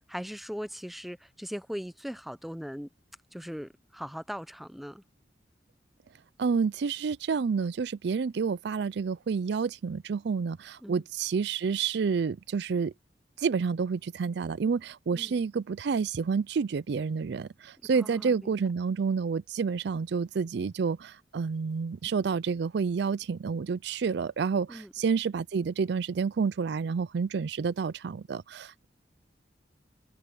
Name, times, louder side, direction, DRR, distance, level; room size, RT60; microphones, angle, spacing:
voice 1, 0.1-2.9 3.3-5.0 10.8-11.0 15.1-15.4 17.9-18.5 24.7-24.9, equal, ahead, 0.8 m, -39 dB
voice 2, 6.4-12.9 13.4-28.9, right 5 dB, 65° right, 0.4 m, -29 dB
head